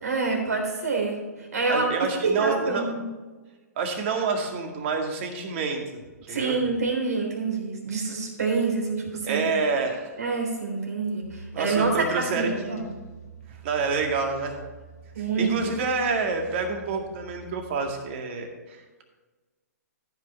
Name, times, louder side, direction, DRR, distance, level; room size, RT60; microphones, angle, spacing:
voice 1, 0.0-1.9 2.2-3.0 6.3-9.5 10.2-12.9 15.1-15.5, right 4 dB, 70° right, 1 dB, 3.5 m, -27 dB
voice 2, 1.7-2.9 3.8-6.0 6.3-6.6 9.2-10.1 11.5-12.8 13.6-14.6 15.2-19.0, right 4 dB, 45° right, 3 dB, 2.0 m, -28 dB
sound 1, 11.2-17.9, right 3 dB, 70° left, 1.8 m, -47 dB
14.0 x 5.9 x 4.3 m, 1.3 s
hypercardioid pair, 130°, 9 cm